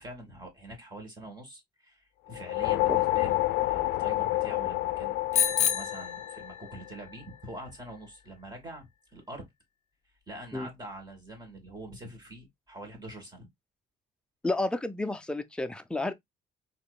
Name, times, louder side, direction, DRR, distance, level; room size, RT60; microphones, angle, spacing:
voice 1, 0.0-9.5 10.3-13.5, right 1 dB, 25° right, 2.1 m, -45 dB
sound 1, 2.3-6.9, left 18 dB, 85° left, 0.4 m, -29 dB
Bicycle bell, 5.3-6.9, left 9 dB, 40° left, 0.8 m, -28 dB
voice 2, 14.4-16.1, left 2 dB, 5° left, 0.5 m, -31 dB
4.2 x 3.0 x 2.3 m
cardioid pair, 110°, 17 cm